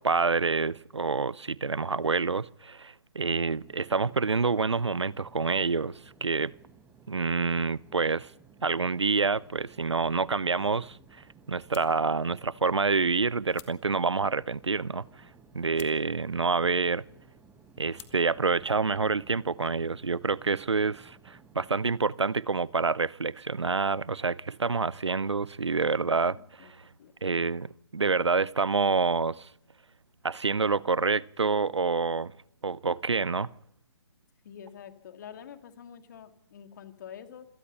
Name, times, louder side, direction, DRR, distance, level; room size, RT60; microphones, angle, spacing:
voice 1, 0.0-6.5 7.1-8.3 8.6-11.0 11.5-15.0 15.5-17.0 17.8-26.8 27.2-29.5 30.2-32.3 32.6-33.5, right 4 dB, 85° right, 0.7 m, -27 dB
sound 1, 3.3-22.0, right 5 dB, 10° right, 1.3 m, -57 dB
sound 2, 9.1-19.4, left 13 dB, 20° left, 1.4 m, -58 dB
voice 2, 25.8-26.7 27.0-27.1 34.4-37.5, left 8 dB, 45° left, 2.5 m, -47 dB
26.5 x 18.0 x 5.6 m
figure-of-eight pair, 140°, 14 cm